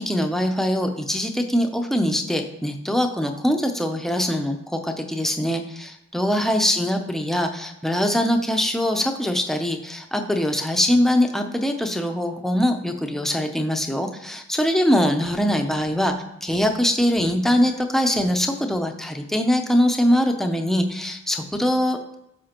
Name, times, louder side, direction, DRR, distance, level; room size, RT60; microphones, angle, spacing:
voice 1, 0.0-22.1, equal, ahead, 4 dB, 0.5 m, -22 dB
12.5 x 4.9 x 2.9 m, 0.86 s
head